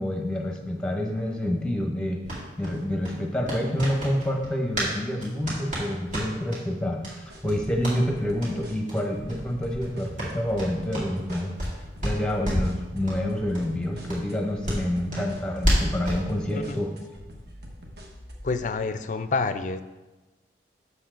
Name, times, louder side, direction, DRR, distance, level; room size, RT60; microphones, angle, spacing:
voice 1, 0.0-2.2 2.6-11.6 12.0-16.9, left 1 dB, 5° left, 1 dB, 0.9 m, -28 dB
sound 1, 2.2-4.9 5.2-6.6 7.0-7.1 7.4-8.0 8.4-8.5 8.8-9.0 9.2-9.4 9.7-11.7 12.0-12.8 13.0-13.2 13.5-13.6 14.1-16.2, equal, 45° right, 2.4 m, -30 dB
sound 2, 7.3-18.6, equal, 60° right, 1.2 m, -44 dB
voice 2, 16.5-16.8 18.4-19.8, left 4 dB, 45° left, 11 dB, 0.4 m, -28 dB
7.1 x 6.8 x 3.8 m, 1.1 s
head